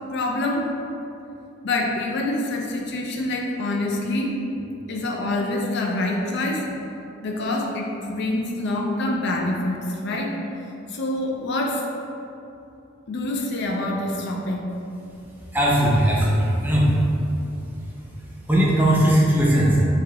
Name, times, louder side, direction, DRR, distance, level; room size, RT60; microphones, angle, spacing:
voice 1, 0.1-0.7 1.6-4.3 4.9-6.7 7.2-10.4 10.9-11.8 13.1-14.7, left 2 dB, 55° left, 0 dB, 0.4 m, -26 dB
voice 2, 15.5-16.9 18.5-19.8, right 1 dB, 10° right, -6 dB, 0.5 m, -18 dB
4.7 x 2.8 x 2.3 m, 2.7 s
head